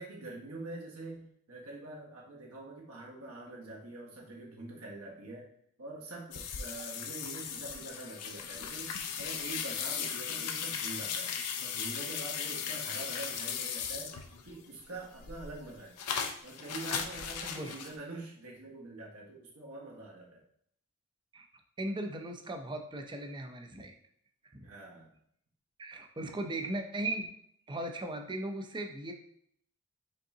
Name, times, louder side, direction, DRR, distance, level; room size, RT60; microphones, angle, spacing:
voice 1, 0.0-5.5 5.8-14.2 14.4-16.0 16.4-20.4 24.6-25.1, right 2 dB, 70° right, -3 dB, 1.4 m, -45 dB
sound 1, 6.3-14.5 14.9-17.9, left 7 dB, 90° left, 0.5 m, -37 dB
voice 2, 21.8-23.9 25.8-27.3 27.7-29.1, right 1 dB, 20° right, 4 dB, 0.5 m, -37 dB
5.3 x 3.7 x 2.7 m, 0.67 s
head